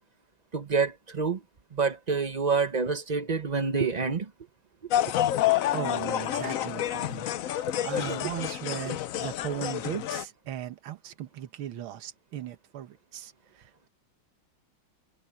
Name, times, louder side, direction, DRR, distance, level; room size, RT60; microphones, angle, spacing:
voice 1, 0.5-1.4 1.7-4.3, right 5 dB, 45° right, 0.5 m, -27 dB
sound 1, 4.9-10.2, left 12 dB, 85° left, 0.7 m, -28 dB
voice 2, 5.7-13.9, right 11 dB, 85° right, 2.0 m, -38 dB
omnidirectional pair, 2.2 m